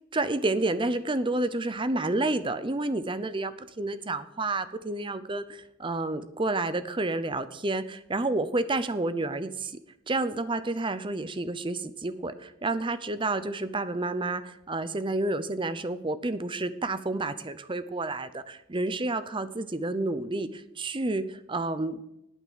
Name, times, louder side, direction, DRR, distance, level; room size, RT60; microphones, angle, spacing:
voice 1, 0.1-9.7 10.1-22.0, right 2 dB, 25° right, 13 dB, 0.7 m, -30 dB
9.0 x 8.8 x 7.6 m, 0.85 s
head